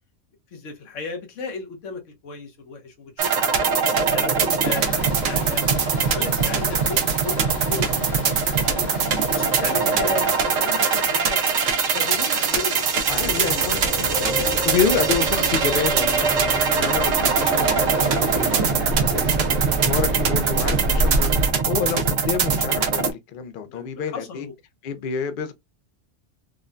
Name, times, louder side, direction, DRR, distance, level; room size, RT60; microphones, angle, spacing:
voice 1, 0.5-3.8 4.1-5.8 6.0-8.9 9.3-11.4 11.9-13.5 14.2-14.7 19.1-19.6 19.9-20.1 23.7-23.9 24.1-24.5, left 4 dB, 90° left, 1.2 m, -35 dB
sound 1, 3.2-23.1, right 6 dB, 85° right, 1.0 m, -22 dB
sound 2, 4.6-18.7, left 3 dB, 40° left, 0.9 m, -36 dB
voice 2, 9.7-10.3 12.9-14.1 14.6-19.4 19.8-21.3 21.7-24.5 24.8-25.5, left 7 dB, 60° left, 0.5 m, -28 dB
sound 3, 13.1-21.5, right 2 dB, 65° right, 1.1 m, -26 dB
3.6 x 2.1 x 2.4 m
omnidirectional pair, 1.3 m